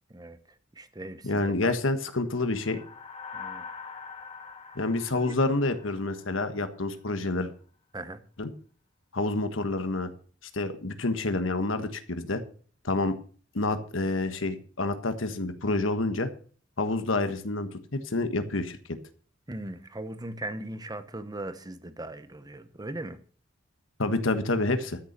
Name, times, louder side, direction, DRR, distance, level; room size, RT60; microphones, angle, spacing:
voice 1, 0.7-1.7 3.3-3.7 5.2-5.3 7.9-8.2 19.5-23.2, right 1 dB, 20° right, 1.0 m, -39 dB
voice 2, 1.2-2.8 4.7-7.5 8.4-8.5 9.1-10.1 10.5-12.4 12.8-13.1 13.5-16.3 16.8-18.8 24.0-25.0, left 2 dB, 75° left, 1.4 m, -28 dB
sound 1, 2.3-6.9, left 5 dB, 35° left, 1.7 m, -44 dB
13.0 x 6.9 x 6.8 m
head